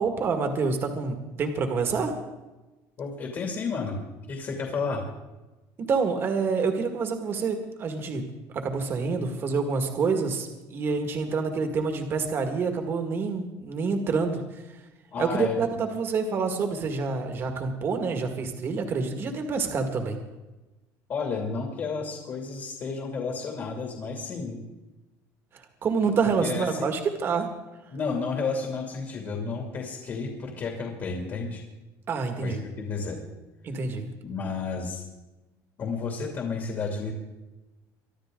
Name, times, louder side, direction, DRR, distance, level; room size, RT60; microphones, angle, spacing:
voice 1, 0.0-2.1 5.8-8.2 8.5-14.4 15.2-20.2 25.8-27.5 32.1-32.6 33.6-34.1, right 4 dB, 30° right, 5 dB, 1.9 m, -27 dB
voice 2, 3.0-4.0 4.3-5.0 15.1-15.6 21.1-24.6 26.4-26.9 27.9-31.6 32.4-33.2 34.2-35.0 35.8-37.1, left 4 dB, 35° left, 1 dB, 2.6 m, -31 dB
24.5 x 12.0 x 3.8 m, 1.1 s
cardioid pair, 170°, 8 cm